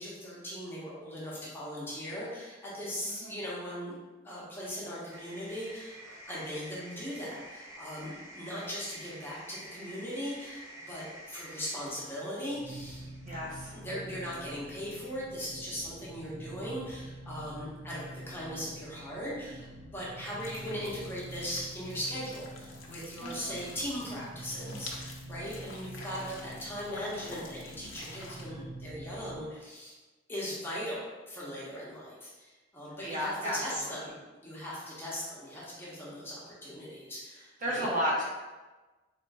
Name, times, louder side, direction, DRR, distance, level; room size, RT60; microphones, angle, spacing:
voice 1, 0.0-4.0 4.2-13.0 13.7-29.9 30.3-34.2 34.4-37.9, equal, 10° left, -7 dB, 1.0 m, -39 dB
sound 1, 5.1-13.9, right 1 dB, 15° right, 0.5 m, -49 dB
sound 2, 12.5-29.5, right 1 dB, 75° right, 0.5 m, -46 dB
voice 2, 13.3-13.7 23.2-23.6 33.0-34.1 37.6-38.3, equal, 45° right, -5 dB, 1.0 m, -33 dB
sound 3, 20.4-28.4, left 3 dB, 85° left, 0.7 m, -48 dB
3.8 x 3.5 x 2.6 m, 1.2 s
head